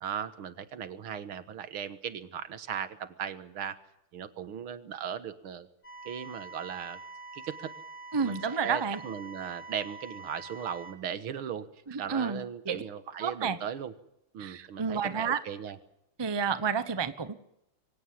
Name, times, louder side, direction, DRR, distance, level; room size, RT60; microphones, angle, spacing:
voice 1, 0.0-3.8 4.1-5.7 6.1-7.0 7.3-7.7 8.2-11.7 12.0-13.9 14.3-15.8, right 8 dB, 80° right, 12 dB, 2.2 m, -37 dB
sound 1, 5.8-10.9, right 3 dB, 35° left, 3.7 m, -45 dB
voice 2, 8.1-9.0 11.9-12.8 13.2-13.6 14.4-15.4 16.2-17.4, right 6 dB, 20° right, 12 dB, 0.7 m, -30 dB
24.0 x 17.0 x 8.7 m, 0.81 s
omnidirectional pair, 2.3 m